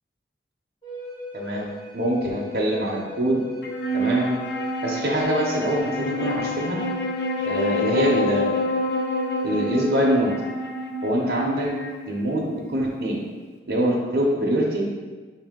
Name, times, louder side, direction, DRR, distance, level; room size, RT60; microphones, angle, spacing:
Wind instrument woodwind instrument, 0.8-10.1, left 2 dB, 25° left, 0.8 m, -38 dB
voice 1, 1.3-1.7 1.9-3.4 3.9-4.4 4.8-6.8 7.5-8.5 9.4-10.3 11.0-11.7 12.1-13.2 13.7-14.9, right 1 dB, 65° right, -4 dB, 0.6 m, -24 dB
Wind instrument woodwind instrument 2, 3.6-13.1, left 1 dB, 75° left, 0.5 m, -28 dB
5.6 x 2.6 x 3.6 m, 1.4 s
head